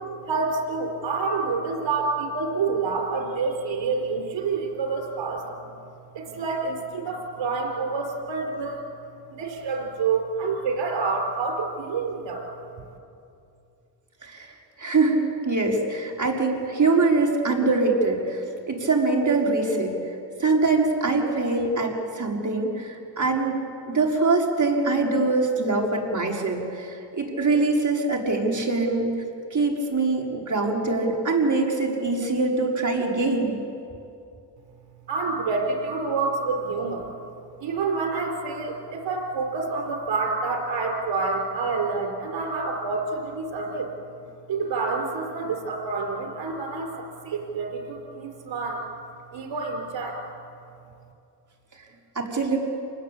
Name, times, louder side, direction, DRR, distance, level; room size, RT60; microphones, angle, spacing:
voice 1, 0.3-5.8 6.1-8.8 9.3-12.4 35.1-37.1 37.6-43.9 44.2-48.9 49.3-50.2, right 4 dB, 85° right, 3 dB, 4.4 m, -28 dB
voice 2, 14.2-14.5 14.8-19.9 20.4-29.1 29.5-33.6 52.1-52.6, right 3 dB, 45° right, 0 dB, 5.2 m, -23 dB
28.5 x 20.0 x 8.6 m, 2.6 s
cardioid pair, 60°, 43 cm